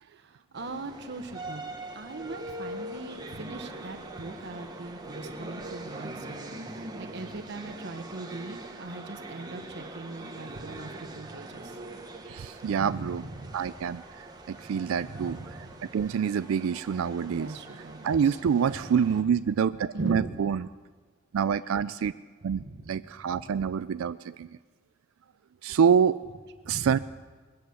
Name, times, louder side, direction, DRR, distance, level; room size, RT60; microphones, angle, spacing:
voice 1, 0.0-11.8 12.6-13.7 15.0-15.9 17.3-18.4 18.6-19.1 19.9-20.5 22.5-23.6 26.6-27.0, right 2 dB, 60° right, 6 dB, 1.2 m, -40 dB
sound 1, 0.5-19.2, right 2 dB, 20° right, 1.1 m, -42 dB
voice 2, 12.3-13.2 13.5-15.4 15.9-17.5 18.0-20.6 21.3-22.1 22.4-24.5 25.6-26.2 26.7-27.0, right 7 dB, 85° right, 13 dB, 0.4 m, -26 dB
21.5 x 8.0 x 7.0 m, 1.5 s
head